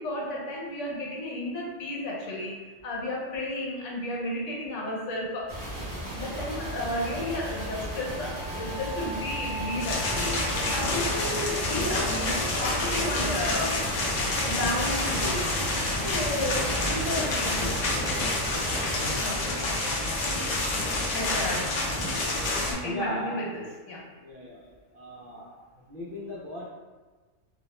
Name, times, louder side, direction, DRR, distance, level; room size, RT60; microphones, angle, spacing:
voice 1, 0.0-2.5 2.8-5.5 6.1-10.4 10.7-13.8 14.5-15.5 15.9-17.6 19.2-19.4 21.1-21.7 22.7-24.0 24.5-24.7 25.2-25.6, left 1 dB, 80° left, -3 dB, 1.0 m, -33 dB
sound 1, 5.5-19.1, right 1 dB, 20° right, 0.6 m, -36 dB
sound 2, 7.7-12.8, right 1 dB, 10° left, 0.9 m, -41 dB
sound 3, 9.8-22.7, left 2 dB, 60° left, 0.5 m, -28 dB
voice 2, 22.8-23.2 24.2-24.6 24.9-25.5 25.9-26.7, left 1 dB, 60° right, -6 dB, 0.6 m, -36 dB
2.3 x 2.0 x 2.9 m, 1.3 s
omnidirectional pair, 1.2 m